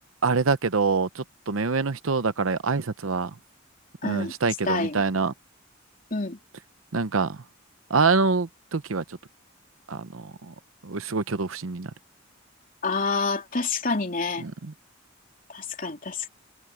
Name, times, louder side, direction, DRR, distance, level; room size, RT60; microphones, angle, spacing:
voice 1, 0.2-3.3 4.0-5.3 6.9-7.4 7.9-9.0 9.9-10.5 10.8-11.9 14.4-14.7, right 4 dB, 90° right, 0.9 m, -25 dB
voice 2, 4.0-4.3 4.6-5.0 6.1-6.4 12.8-14.4 15.5-16.3, left 4 dB, 45° left, 3.5 m, -28 dB
head